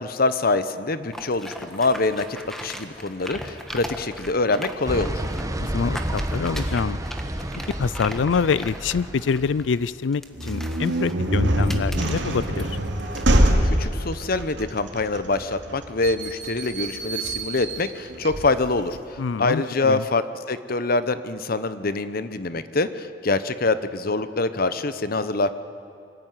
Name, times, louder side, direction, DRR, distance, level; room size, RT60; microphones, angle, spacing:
voice 1, 0.0-5.1 13.6-25.5, left 3 dB, 55° left, 12 dB, 1.0 m, -25 dB
sound 1, 1.1-13.4, equal, ahead, 1.6 m, -39 dB
sound 2, 4.8-9.7, right 1 dB, 20° right, 1.1 m, -30 dB
voice 2, 5.6-7.0 7.8-12.8 19.2-20.0, left 5 dB, 90° left, 19 dB, 0.4 m, -26 dB
sound 3, 10.3-19.0, right 1 dB, 90° right, 2.5 m, -25 dB
24.5 x 15.0 x 9.6 m, 2.6 s
head